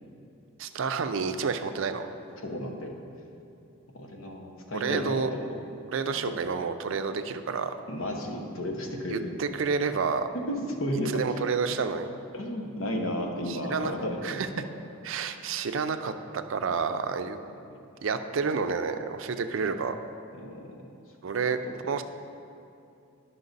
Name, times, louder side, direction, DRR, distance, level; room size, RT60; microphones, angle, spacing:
voice 1, 0.6-2.1 4.7-5.3 5.9-7.7 9.1-10.3 11.1-12.1 13.5-13.9 14.2-14.5 15.0-17.4 18.0-20.0 21.2-21.6 21.9-22.0, right 5 dB, 70° right, 9 dB, 0.4 m, -29 dB
voice 2, 2.4-3.0 3.9-5.6 6.1-6.3 7.9-9.3 10.3-11.4 12.3-14.4 20.4-20.8 21.4-21.7, equal, 75° left, 2 dB, 1.0 m, -33 dB
10.5 x 5.8 x 4.0 m, 2.7 s
head